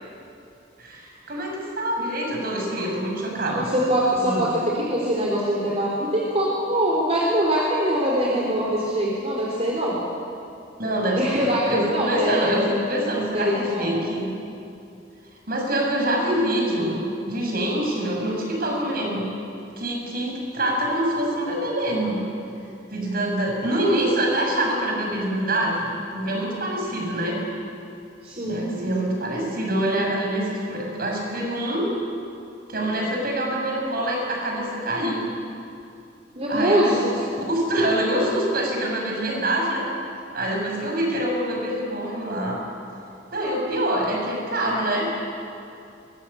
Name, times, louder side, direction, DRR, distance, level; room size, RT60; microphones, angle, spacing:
voice 1, 0.8-3.7 4.2-4.4 10.8-14.3 15.5-19.2 19.8-22.2 22.9-27.4 28.4-31.9 32.7-35.2 36.5-37.1 37.5-39.8 40.3-42.6 43.3-45.1, right 1 dB, 55° right, -1 dB, 6.8 m, -25 dB
voice 2, 3.5-10.0 11.1-11.6 11.9-12.8 13.3-14.0 28.2-28.7 36.3-37.0, equal, 35° right, -4 dB, 3.8 m, -23 dB
23.0 x 21.5 x 8.6 m, 2.6 s
head